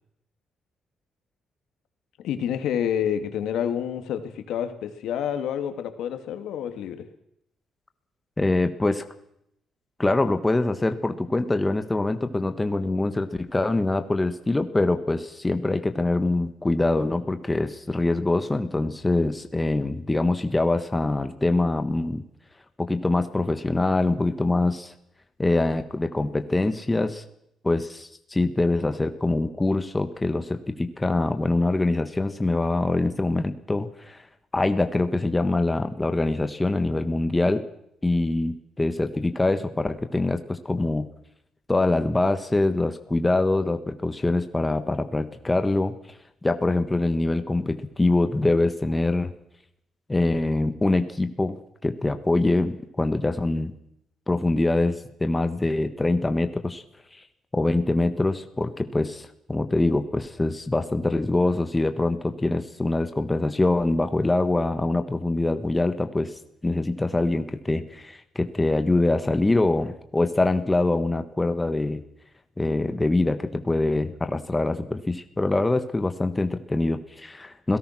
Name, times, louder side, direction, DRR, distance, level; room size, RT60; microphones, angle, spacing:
voice 1, 2.2-7.1, left 9 dB, 85° left, 8 dB, 2.6 m, -28 dB
voice 2, 8.4-9.0 10.0-22.2 22.8-24.9 25.4-27.2 27.6-34.2 34.5-37.6 38.0-41.1 41.7-45.9 46.4-49.3 50.1-53.7 54.3-54.9 55.2-56.8 57.5-66.3 66.6-72.0 72.6-77.8, left 2 dB, 10° left, 9 dB, 1.4 m, -24 dB
28.5 x 18.0 x 6.1 m, 0.76 s
cardioid pair, 150°, 0 cm